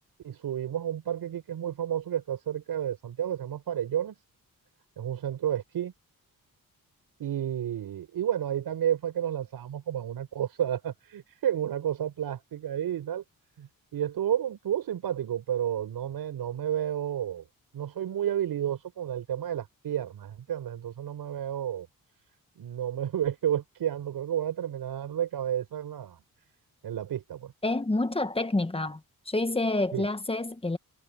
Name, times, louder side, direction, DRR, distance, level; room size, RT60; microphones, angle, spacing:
voice 1, 0.2-4.1 5.0-5.9 7.2-13.2 13.6-17.4 17.7-21.9 22.6-26.2 26.8-27.5 29.9-30.1, right 10 dB, 90° right, 4.9 m, -31 dB
voice 2, 27.6-29.0 29.3-30.8, left 2 dB, 15° left, 1.4 m, -28 dB
cardioid pair, 95°, 36 cm